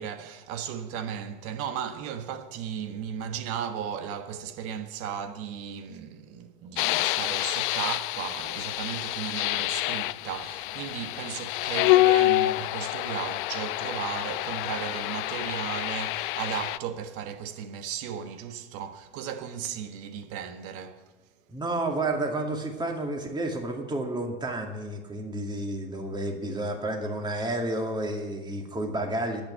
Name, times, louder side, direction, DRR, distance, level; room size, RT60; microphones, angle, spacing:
voice 1, 0.0-21.0, right 8 dB, 50° right, 1.4 m, -35 dB
sound 1, 6.8-16.8, left 19 dB, 60° left, 0.5 m, -27 dB
voice 2, 21.5-29.4, right 2 dB, 15° right, 2.2 m, -31 dB
10.5 x 8.6 x 9.5 m
hypercardioid pair, 90°, 29 cm